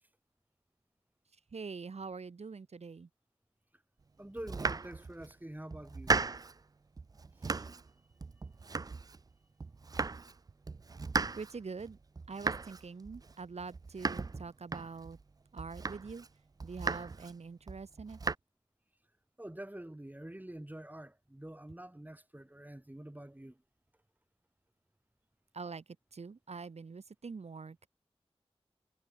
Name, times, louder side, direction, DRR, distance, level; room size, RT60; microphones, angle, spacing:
voice 1, 1.5-3.1 11.4-12.0 12.3-15.2 15.5-16.3 16.6-18.2 25.5-25.8 26.1-27.9, right 4 dB, 80° right, 2.8 m, -44 dB
voice 2, 4.2-6.2 7.4-7.6 19.4-23.5, right 1 dB, 15° right, 1.7 m, -47 dB
Domestic sounds home sounds, 4.4-5.3 5.7-6.6 7.0-7.9 8.2-9.3 9.6-10.4 10.6-15.2 15.6-16.3 16.6-17.3 17.7-18.3, right 4 dB, 35° right, 0.4 m, -37 dB
cardioid pair, 40°, 11 cm